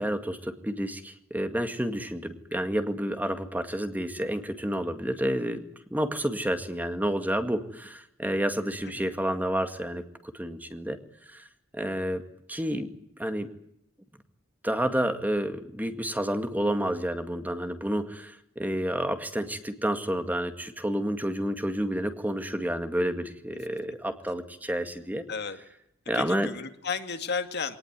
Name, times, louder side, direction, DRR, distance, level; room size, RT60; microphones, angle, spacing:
voice 1, 0.0-5.6 5.9-10.0 10.3-11.0 11.3-11.4 11.7-12.2 12.5-12.9 13.2-13.5 14.6-25.2 26.1-26.5, equal, 10° right, 8 dB, 2.0 m, -30 dB
voice 2, 8.8-9.2 25.3-25.6 26.1-27.8, left 5 dB, 55° left, 8 dB, 2.2 m, -33 dB
22.5 x 19.0 x 9.5 m, 0.75 s
head